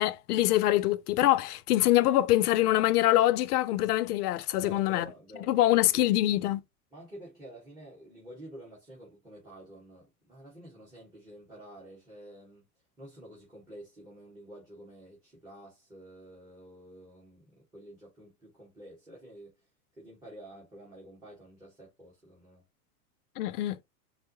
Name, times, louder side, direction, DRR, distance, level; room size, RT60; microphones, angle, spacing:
voice 1, 0.0-5.1 5.5-6.6 23.4-23.8, left 14 dB, 85° left, 0.5 m, -24 dB
voice 2, 4.6-6.1 6.9-12.7 13.0-19.5 20.0-22.6, right 1 dB, 10° right, 1.6 m, -49 dB
4.5 x 2.1 x 2.7 m
supercardioid pair, 130°, 45 cm